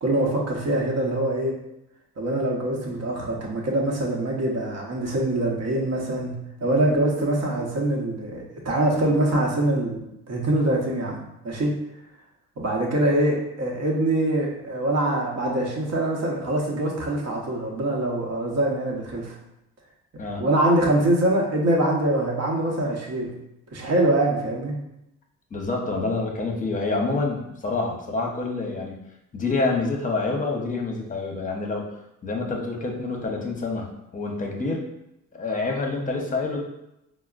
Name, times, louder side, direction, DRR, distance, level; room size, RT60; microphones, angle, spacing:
voice 1, 0.0-1.5 2.2-10.0 10.3-11.7 12.6-19.3 20.4-23.3 23.7-24.8, right 1 dB, 60° right, -2 dB, 0.9 m, -24 dB
voice 2, 25.5-29.0 29.3-31.9 32.2-34.8 35.3-36.6, left 3 dB, 25° left, 1 dB, 0.7 m, -27 dB
4.2 x 2.0 x 2.4 m, 0.86 s
cardioid pair, 90°, 30 cm